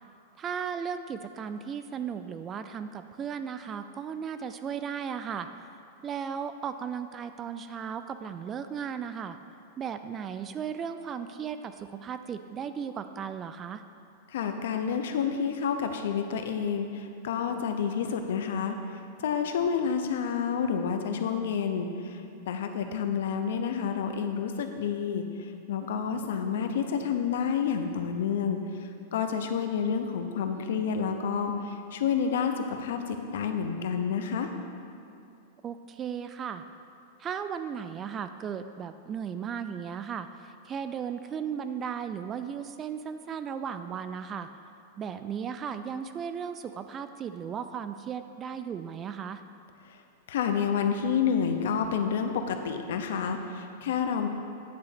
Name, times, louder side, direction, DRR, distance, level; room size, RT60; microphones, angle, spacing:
voice 1, 0.4-5.5 6.0-9.4 9.8-13.8 35.6-36.6 37.2-44.5 45.0-49.4, right 7 dB, 20° right, 10 dB, 0.3 m, -36 dB
voice 2, 14.3-18.7 19.2-28.6 29.1-34.5 49.9-50.0 50.3-54.3, left 7 dB, 75° left, 6 dB, 0.8 m, -29 dB
9.6 x 4.0 x 6.7 m, 2.6 s
supercardioid pair, 150°, 0 cm